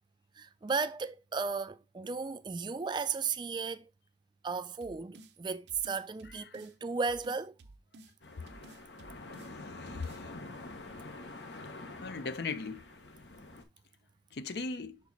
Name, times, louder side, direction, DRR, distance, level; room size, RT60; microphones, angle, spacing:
voice 1, 0.4-3.9 4.4-7.5, right 5 dB, 25° right, 0.4 m, -35 dB
sound 1, 4.8-5.3 5.7-6.7 7.1-8.1 8.5-9.5 9.9-10.2, right 2 dB, 75° right, 0.7 m, -54 dB
sound 2, 8.2-13.6, left 2 dB, 80° left, 1.1 m, -46 dB
voice 2, 9.8-10.3 12.0-12.9 14.3-15.0, left 4 dB, 65° left, 0.6 m, -38 dB
5.9 x 4.5 x 4.0 m
head